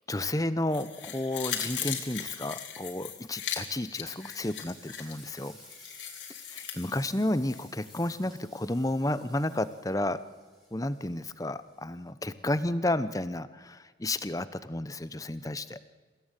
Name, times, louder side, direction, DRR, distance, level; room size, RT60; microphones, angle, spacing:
voice 1, 0.1-5.6 6.5-10.2 10.7-15.8, left 1 dB, 20° left, 14 dB, 0.9 m, -32 dB
sound 1, 0.7-8.2 8.5-8.6, left 9 dB, 85° left, 3.4 m, -39 dB
Frying (food), 2.4-12.1, equal, ahead, 5.5 m, -56 dB
28.0 x 16.5 x 9.1 m, 1.5 s
head